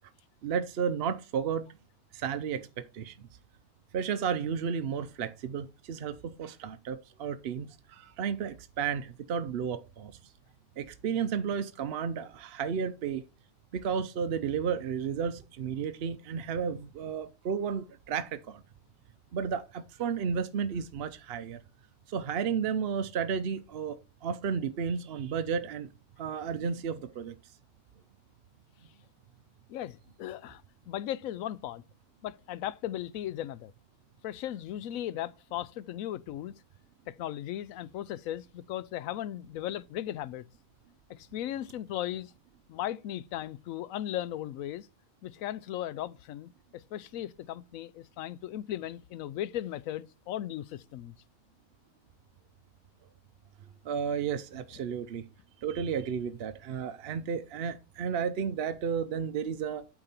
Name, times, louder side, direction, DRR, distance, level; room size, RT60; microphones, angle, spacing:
voice 1, 0.4-1.7 2.1-3.3 3.9-10.1 10.8-13.3 13.7-18.6 19.3-21.6 22.1-25.9 26.2-27.3 53.8-55.3 55.6-59.9, right 7 dB, 60° right, 0.7 m, -33 dB
voice 2, 29.7-31.8 32.2-33.7 34.2-36.5 37.1-40.5 41.1-42.3 42.7-44.9 45.2-51.2, left 12 dB, 75° left, 0.9 m, -37 dB
8.8 x 4.9 x 4.3 m
omnidirectional pair, 1.5 m